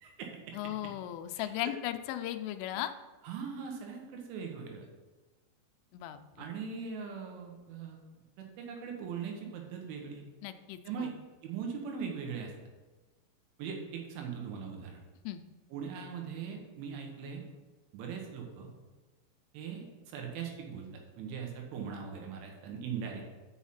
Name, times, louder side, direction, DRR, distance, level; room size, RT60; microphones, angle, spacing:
voice 1, 0.0-0.5 1.4-1.7 2.7-2.8 3.2-4.9 6.4-8.0 8.4-10.2 10.9-11.1 11.4-12.5 13.6-15.0 15.7-17.4 17.9-18.7 19.5-20.9 21.2-23.3, right 6 dB, 80° right, 2 dB, 3.6 m, -40 dB
voice 2, 0.5-2.9 5.9-6.5 10.4-11.1 15.2-15.4, left 13 dB, 85° left, 8 dB, 3.0 m, -37 dB
7.0 x 6.4 x 5.7 m, 1.2 s
omnidirectional pair, 5.6 m